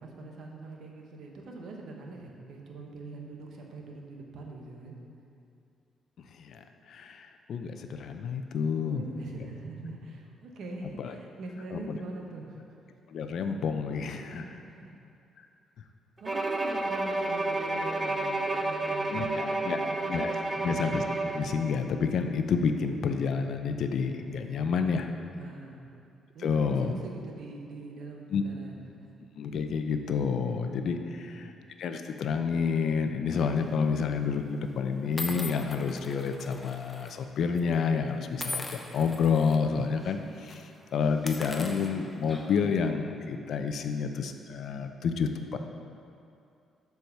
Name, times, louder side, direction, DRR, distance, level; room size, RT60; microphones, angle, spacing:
voice 1, 0.0-5.0 8.8-12.7 14.2-15.0 16.2-20.2 20.4-20.8 25.3-25.8 26.3-28.8 30.9-31.5, right 2 dB, 70° right, 1 dB, 1.1 m, -43 dB
voice 2, 6.4-9.0 11.0-11.1 11.7-12.0 13.1-14.4 19.1-20.3 20.6-21.0 21.3-25.1 26.4-26.9 28.3-28.4 29.4-31.5 31.8-45.6, left 5 dB, 65° left, 6 dB, 0.5 m, -29 dB
Bowed string instrument, 16.2-21.6, right 2 dB, 20° right, 0.6 m, -30 dB
sound 1, 33.5-33.8 34.5-34.6 35.2-37.1 37.4-37.6 38.4-39.6 40.0-40.2 40.4-40.6 41.1-42.7, left 1 dB, 10° left, 0.8 m, -40 dB
7.0 x 4.7 x 6.5 m, 2.5 s
cardioid pair, 90°, 0 cm